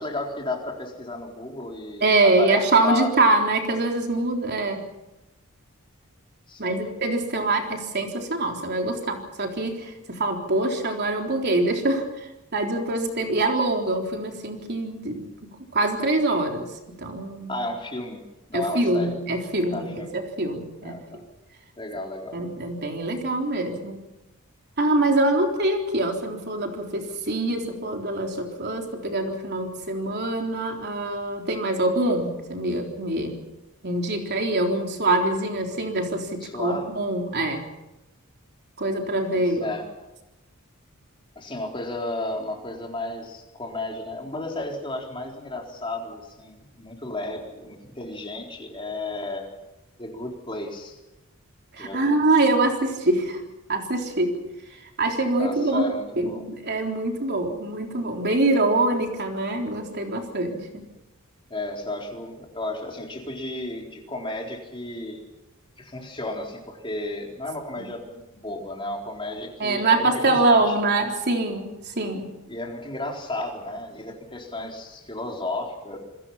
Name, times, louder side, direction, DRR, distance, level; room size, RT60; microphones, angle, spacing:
voice 1, 0.0-3.1 6.5-6.8 17.5-18.2 18.5-19.1 19.7-20.1 20.8-21.2 21.8-22.4 36.4-36.9 39.3-39.9 41.4-49.5 50.0-51.0 51.8-52.2 55.4-56.4 61.5-65.2 65.8-70.7 72.5-76.0, left 2 dB, 25° left, 1 dB, 4.1 m, -33 dB
voice 2, 2.0-4.9 6.6-12.0 12.5-15.3 15.7-16.7 17.0-17.6 18.5-21.2 22.3-24.0 24.8-33.4 33.8-37.6 38.8-39.7 51.7-53.4 53.7-54.4 55.0-55.9 56.2-60.8 67.8-67.9 69.6-72.3, right 2 dB, 50° right, 2 dB, 3.8 m, -24 dB
28.0 x 21.5 x 5.8 m, 0.95 s
head